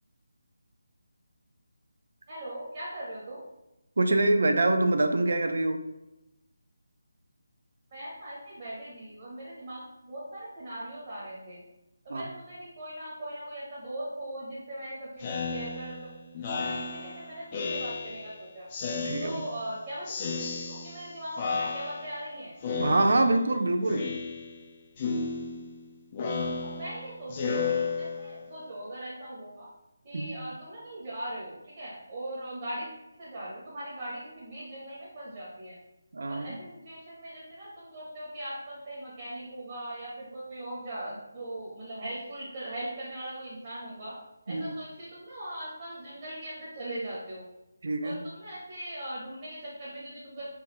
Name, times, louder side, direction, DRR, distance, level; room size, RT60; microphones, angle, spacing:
voice 1, 2.3-3.4 7.9-11.6 12.1-18.7 19.2-20.0 20.3-22.5 26.4-29.7 30.0-32.9 33.2-35.8 36.3-44.1 44.5-47.4 48.0-50.5, right 1 dB, 35° right, -7 dB, 0.9 m, -40 dB
voice 2, 4.0-5.8 12.1-12.3 19.0-19.4 22.8-24.0 30.1-30.4 36.1-36.6 44.5-44.8 47.8-48.2, right 2 dB, 60° right, 6 dB, 0.4 m, -25 dB
Speech synthesizer, 15.2-18.4 18.7-19.7 20.1-21.1 21.4-22.3 22.6-23.5 23.9-24.7 25.0-28.5, left 4 dB, 30° left, 0.3 m, -33 dB
3.1 x 2.3 x 3.0 m, 0.95 s
figure-of-eight pair, 155°, 0 cm